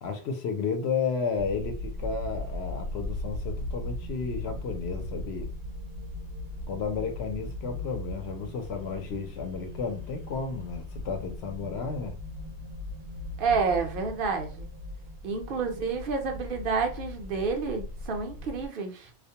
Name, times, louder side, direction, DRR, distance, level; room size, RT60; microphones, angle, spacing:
voice 1, 0.0-5.5 6.7-12.2, left 5 dB, 70° left, 0.8 m, -32 dB
sound 1, 1.4-18.7, left 1 dB, 90° right, 0.9 m, -38 dB
voice 2, 13.4-14.7 15.2-19.1, right 5 dB, 60° right, 0.8 m, -29 dB
2.4 x 2.1 x 2.7 m
omnidirectional pair, 1.1 m